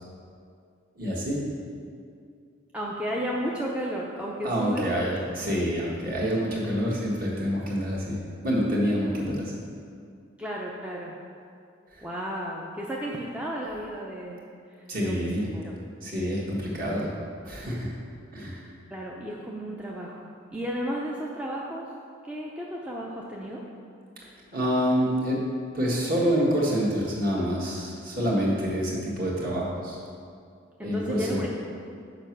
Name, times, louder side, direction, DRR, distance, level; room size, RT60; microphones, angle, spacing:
voice 1, 1.0-1.4 4.4-8.2 8.4-9.5 11.9-12.0 14.9-15.5 16.0-17.1 17.4-17.9 18.3-18.6 24.5-25.4 25.7-30.0 30.8-31.4, equal, 45° right, -5 dB, 1.6 m, -27 dB
voice 2, 2.7-5.3 10.4-11.1 12.0-14.4 14.7-15.7 18.9-21.9 22.2-23.7 30.8-31.5, equal, 5° right, -3 dB, 0.5 m, -33 dB
6.9 x 5.2 x 5.9 m, 2.3 s
head